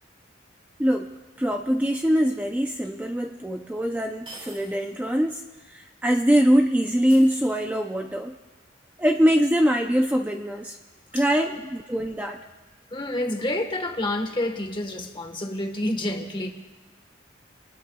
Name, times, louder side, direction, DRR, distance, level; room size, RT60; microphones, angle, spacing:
voice 1, 0.8-1.1 1.4-5.4 5.7-8.3 9.0-10.8 11.1-12.4, equal, 10° right, 3 dB, 0.5 m, -23 dB
sound 1, 2.8-2.9 4.3-5.0 5.3-5.4 7.1-8.0, right 2 dB, 25° right, 2.4 m, -45 dB
voice 2, 12.9-16.5, left 1 dB, 25° left, 5 dB, 1.3 m, -28 dB
27.5 x 20.5 x 2.3 m, 1.2 s
head